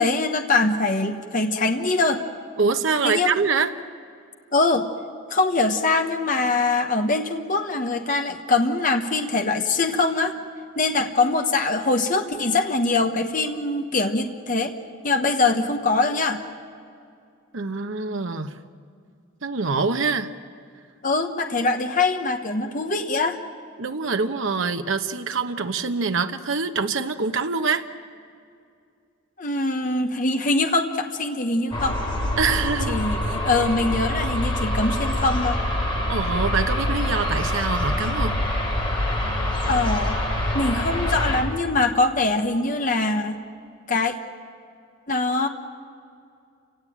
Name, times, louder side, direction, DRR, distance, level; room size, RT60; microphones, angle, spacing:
voice 1, 0.0-2.2 3.0-3.3 4.5-4.9 5.3-10.3 10.8-14.7 15.0-16.4 21.0-23.4 29.4-32.0 32.9-35.6 39.7-40.2 40.5-43.4 43.9-44.1 45.1-45.5, left 3 dB, 40° left, 5 dB, 1.2 m, -23 dB
voice 2, 2.6-3.7 17.5-18.6 19.4-20.3 23.8-27.8 32.4-33.0 36.1-38.4, right 4 dB, 70° right, 7 dB, 1.0 m, -25 dB
sound 1, 31.7-41.4, left 1 dB, 25° left, 3.5 m, -25 dB
29.0 x 17.0 x 8.8 m, 2.4 s
head